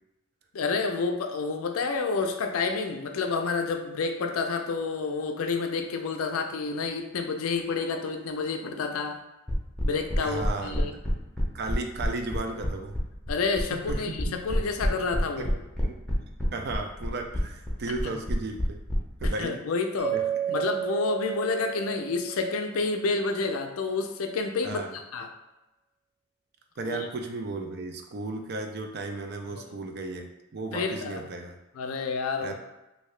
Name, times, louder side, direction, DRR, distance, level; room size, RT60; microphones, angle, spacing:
voice 1, 0.5-9.2 9.8-10.9 13.3-15.6 19.2-20.2 20.5-25.3 26.8-27.0 29.5-29.6 30.7-31.2 31.7-32.5, left 4 dB, 85° left, 5 dB, 0.4 m, -29 dB
sound 1, 9.5-19.3, equal, 5° left, 0.6 m, -28 dB
voice 2, 10.2-11.0 11.5-12.9 13.7-14.3 15.4-15.5 15.8-15.9 16.5-18.8 19.2-19.6 20.1-20.2 20.5-20.6 24.6-24.9 26.8-30.3 30.5-31.5 32.4-32.5, right 3 dB, 50° right, 4 dB, 0.4 m, -34 dB
Mallet percussion, 20.0-23.0, right 9 dB, 90° right, 0.8 m, -32 dB
2.8 x 2.7 x 3.1 m, 0.99 s
head